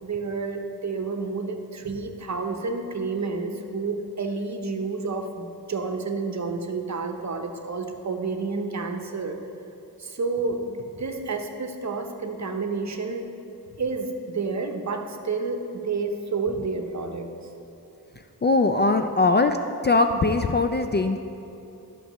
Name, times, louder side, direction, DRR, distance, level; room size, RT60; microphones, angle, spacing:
voice 1, 0.0-9.4 10.0-13.3 13.8-17.3, right 4 dB, 45° right, 5 dB, 0.8 m, -30 dB
voice 2, 18.4-19.6 19.8-21.2, left 3 dB, 30° left, 6 dB, 0.4 m, -21 dB
13.0 x 6.1 x 3.0 m, 3.0 s
cardioid pair, 65°, 39 cm